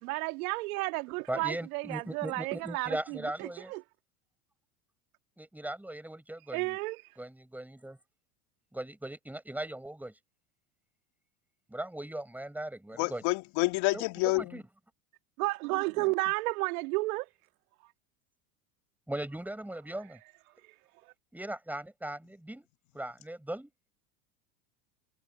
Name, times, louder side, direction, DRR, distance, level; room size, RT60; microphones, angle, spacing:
voice 1, 0.0-3.8 6.5-7.2 15.4-17.3 20.6-20.8 21.1-21.2, right 24 dB, 70° right, 1.9 m, -32 dB
voice 2, 1.3-3.7 5.4-6.8 7.2-8.0 8.7-10.1 11.7-13.2 13.9-14.6 19.1-20.2 21.3-22.7 22.9-23.7, right 1 dB, 5° right, 6.5 m, -39 dB
voice 3, 13.0-14.6, left 25 dB, 60° left, 2.4 m, -28 dB
supercardioid pair, 105°, 45 cm